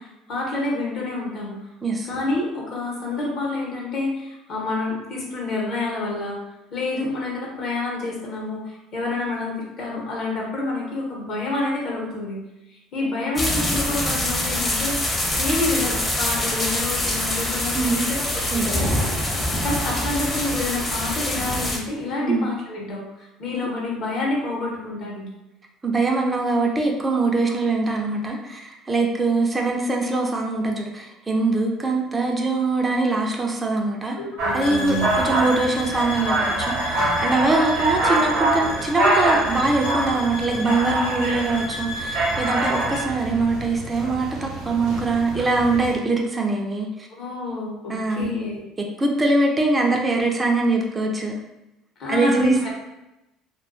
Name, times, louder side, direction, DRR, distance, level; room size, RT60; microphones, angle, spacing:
voice 1, 0.0-1.6 2.0-6.4 6.7-12.4 12.7-18.9 19.6-25.3 34.1-35.1 47.2-48.6 52.0-52.7, left 2 dB, 60° left, -3 dB, 0.8 m, -28 dB
sound 1, 13.3-21.8, left 1 dB, 20° left, 0.6 m, -24 dB
voice 2, 18.5-19.0 22.2-22.5 25.8-34.2 34.5-47.1 47.9-48.4 49.0-51.3 52.1-52.7, right 3 dB, 20° right, 1 dB, 0.4 m, -23 dB
sound 2, 34.4-45.9, right 2 dB, 75° right, 0.7 m, -25 dB
sound 3, 34.6-43.1, left 1 dB, 80° left, 0.4 m, -33 dB
2.3 x 2.2 x 2.4 m, 0.94 s
supercardioid pair, 95°, 0 cm